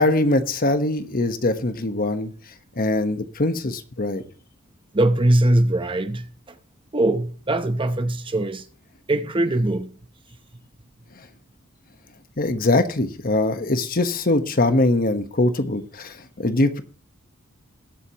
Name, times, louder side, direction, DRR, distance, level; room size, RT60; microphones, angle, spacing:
voice 1, 0.0-2.3 2.8-4.2 12.4-16.8, left 2 dB, 40° left, 1.2 m, -22 dB
voice 2, 4.9-6.3 6.9-8.6 9.1-9.9, right 1 dB, 25° right, 0.8 m, -21 dB
20.5 x 8.0 x 3.0 m
head